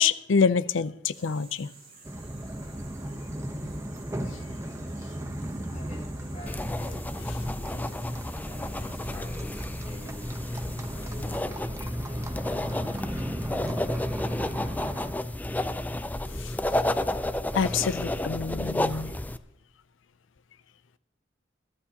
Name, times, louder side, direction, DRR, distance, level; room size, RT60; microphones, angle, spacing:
voice 1, 0.0-1.7 4.3-4.4 16.3-16.5 17.5-19.2, left 6 dB, 80° left, 16 dB, 0.5 m, -26 dB
sound 1, 1.1-11.4, right 4 dB, 35° right, 5.8 m, -52 dB
sound 2, 2.0-15.1, right 1 dB, 15° right, 0.9 m, -37 dB
voice 2, 5.7-7.9 8.4-10.4 10.9-13.1, equal, 40° left, -1 dB, 5.2 m, -47 dB
sound 3, 6.5-19.4, left 1 dB, 10° left, 0.4 m, -31 dB
22.0 x 12.5 x 2.9 m, 0.86 s
head